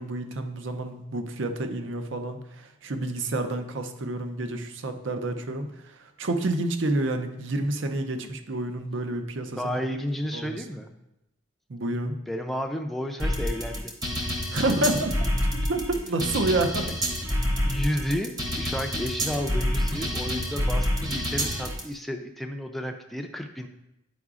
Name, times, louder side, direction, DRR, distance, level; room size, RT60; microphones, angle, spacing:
voice 1, 0.0-9.8 10.3-10.8 11.7-12.2 14.5-15.1 15.7-16.9, right 2 dB, 65° right, 7 dB, 0.6 m, -29 dB
voice 2, 9.6-10.9 12.3-13.9 16.9-17.0 17.6-23.7, equal, ahead, 3 dB, 0.4 m, -32 dB
sound 1, 13.2-21.8, equal, 20° right, 0.8 m, -28 dB
9.3 x 4.8 x 2.4 m, 0.89 s
head